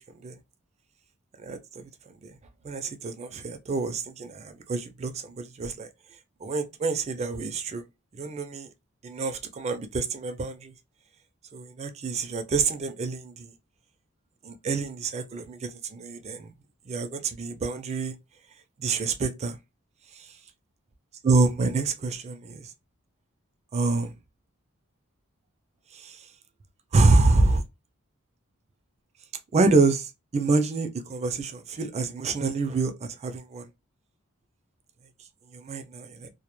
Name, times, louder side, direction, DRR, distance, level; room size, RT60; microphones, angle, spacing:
voice 1, 1.4-1.9 2.2-2.3 2.6-5.9 6.4-7.8 8.1-8.7 9.0-10.7 11.5-13.5 14.4-16.5 16.9-18.1 18.8-19.5 21.2-22.7 23.7-24.1 25.9-26.2 26.9-27.6 29.5-33.7 35.5-36.3, right 3 dB, 30° right, 0.4 m, -26 dB
2.1 x 2.0 x 2.9 m
head